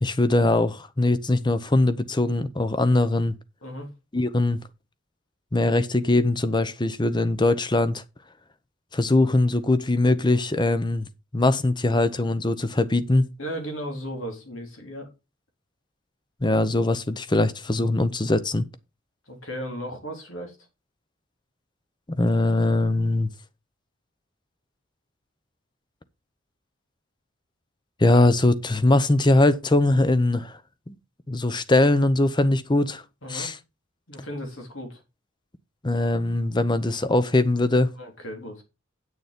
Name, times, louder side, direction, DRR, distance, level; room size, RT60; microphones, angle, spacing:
voice 1, 0.0-3.3 4.1-4.6 5.5-8.0 8.9-11.1 11.3-13.3 16.4-18.6 22.1-23.3 28.0-30.6 30.9-31.0 31.3-33.0 33.3-33.5 35.8-37.9, left 2 dB, 20° left, 0.8 m, -21 dB
voice 2, 13.4-15.1 19.3-20.6 33.2-33.5 34.1-35.0 38.0-38.6, equal, 80° left, 3.6 m, -35 dB
9.3 x 6.7 x 5.2 m
head